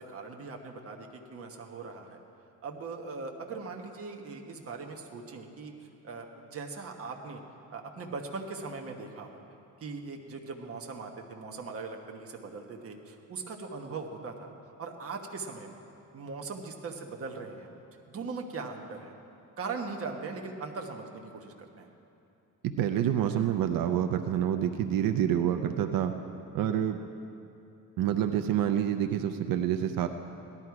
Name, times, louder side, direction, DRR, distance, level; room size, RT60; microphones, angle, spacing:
voice 1, 0.0-2.2 2.6-7.4 7.7-9.4 9.8-14.5 14.8-15.8 16.1-17.7 18.1-19.1 19.6-21.9, right 4 dB, 45° right, 2 dB, 1.3 m, -40 dB
voice 2, 22.6-26.1 26.5-27.0 28.0-30.1, right 10 dB, 90° right, 7 dB, 0.6 m, -27 dB
17.5 x 12.5 x 4.8 m, 2.8 s
cardioid pair, 150°, 33 cm